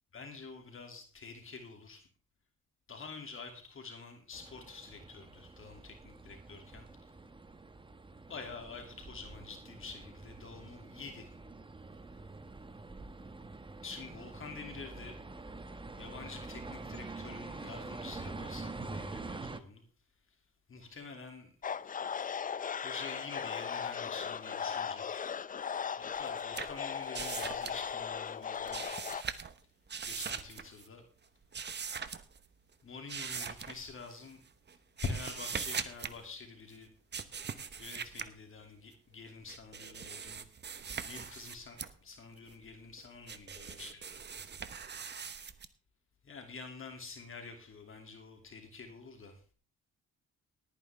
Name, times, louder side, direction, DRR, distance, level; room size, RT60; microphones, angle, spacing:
voice 1, 0.1-2.1 2.9-6.9 8.3-11.3 13.8-15.2 16.0-19.8 20.7-21.5 22.8-25.2 26.2-28.9 30.0-31.0 32.8-34.4 35.0-36.9 37.8-40.4 41.0-44.4 46.2-49.4, left 4 dB, 45° left, 4 dB, 2.5 m, -47 dB
sound 1, 4.3-19.6, right 3 dB, 15° right, 1.0 m, -46 dB
sound 2, 21.6-29.2, left 7 dB, 30° left, 0.5 m, -37 dB
sound 3, 26.2-28.2 28.4-29.6 29.9-30.9 31.5-32.4 33.1-34.2 34.7-36.2 37.1-38.3 39.3-41.9 42.5-45.7, right 6 dB, 35° right, 1.1 m, -41 dB
18.0 x 9.5 x 3.4 m, 0.38 s
cardioid pair, 90°, 30 cm